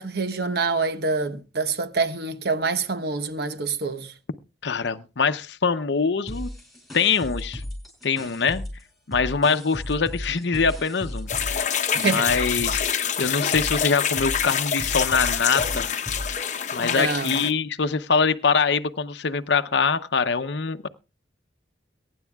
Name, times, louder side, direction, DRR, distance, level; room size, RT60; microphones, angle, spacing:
voice 1, 0.0-4.1 11.9-12.3 16.8-17.4, right 4 dB, 60° right, 1.0 m, -26 dB
voice 2, 4.6-6.5 6.9-7.6 8.0-8.6 9.1-16.0 16.3-16.4 16.7-20.9, left 5 dB, 70° left, 0.7 m, -24 dB
sound 1, 6.3-8.8 9.1-16.4, left 1 dB, ahead, 6.0 m, -35 dB
sound 2, 11.3-17.5, left 8 dB, 40° left, 0.9 m, -26 dB
22.5 x 10.0 x 2.3 m
head